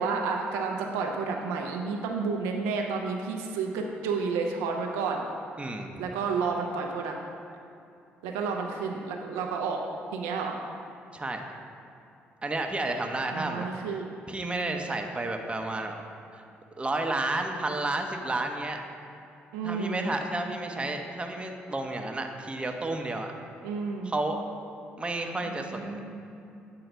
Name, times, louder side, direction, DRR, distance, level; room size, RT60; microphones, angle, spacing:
voice 1, 0.0-5.3 6.0-7.2 8.2-9.8 10.1-10.6 13.3-14.1 19.5-20.1 23.6-24.1 25.4-26.3, right 5 dB, 85° right, 1 dB, 0.5 m, -31 dB
voice 2, 5.6-6.0 11.1-11.4 12.4-13.7 14.3-16.0 16.3-16.4 16.8-18.8 19.6-23.3 24.0-24.4 25.0-26.0, right 2 dB, 20° right, 3 dB, 0.7 m, -31 dB
8.0 x 3.8 x 4.5 m, 2.7 s
supercardioid pair, 55°, 5 cm